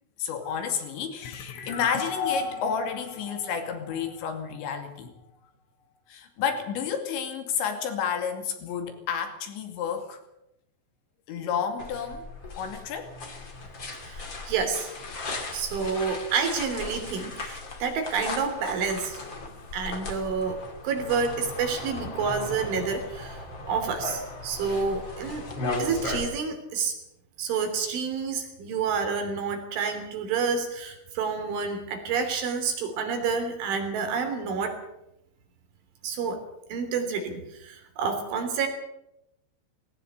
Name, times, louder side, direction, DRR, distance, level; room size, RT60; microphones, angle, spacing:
voice 1, 0.2-5.1 6.1-10.2 11.3-12.2 12.6-13.1, left 7 dB, 70° left, 6 dB, 4.6 m, -31 dB
sound 1, 1.2-4.7, left 4 dB, 90° left, 5.0 m, -35 dB
sound 2, 11.8-26.2, left 2 dB, 30° left, 2.7 m, -37 dB
voice 2, 14.0-14.9 15.5-19.2 19.7-25.5 25.8-27.0 27.4-34.8 36.0-36.4 36.7-38.7, right 5 dB, 75° right, 6 dB, 5.6 m, -29 dB
19.5 x 17.5 x 8.1 m, 0.85 s
omnidirectional pair, 5.6 m